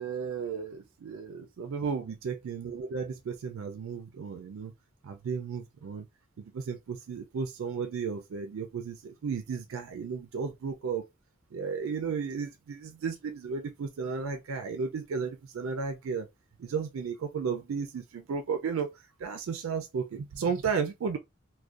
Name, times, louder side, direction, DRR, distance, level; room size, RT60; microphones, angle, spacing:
voice 1, 0.0-4.7 5.0-6.1 6.4-11.1 11.5-16.3 16.6-21.2, right 5 dB, 75° right, 0.3 m, -34 dB
2.3 x 2.1 x 2.5 m
head